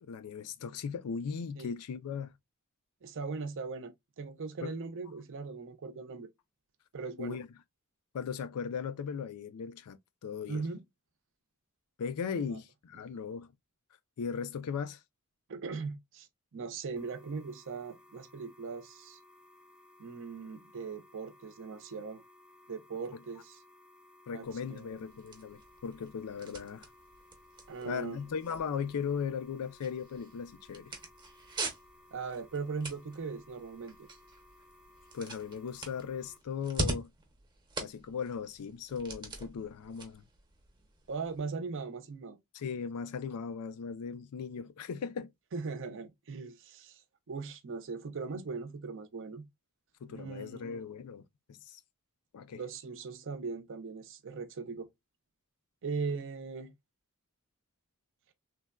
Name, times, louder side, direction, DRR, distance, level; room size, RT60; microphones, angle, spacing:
voice 1, 0.0-2.3 4.6-4.7 7.2-7.5 8.1-10.6 12.0-13.5 14.2-15.0 24.3-26.9 27.8-30.9 35.1-37.1 37.8-40.2 42.5-45.3 50.0-51.8 52.3-52.6, left 6 dB, 75° left, 0.4 m, -38 dB
voice 2, 3.0-6.3 6.9-7.4 10.5-10.8 12.5-12.6 15.5-19.2 20.0-22.2 22.7-23.6 24.3-25.0 27.7-28.2 32.1-34.1 41.1-42.4 45.5-47.0 47.3-49.4 50.1-50.8 52.6-54.9 55.8-56.7, right 4 dB, 60° right, 0.5 m, -39 dB
sound 1, 17.0-36.4, left 2 dB, 5° right, 0.3 m, -60 dB
sound 2, 24.4-41.4, right 2 dB, 20° right, 0.7 m, -44 dB
3.2 x 2.1 x 2.2 m
head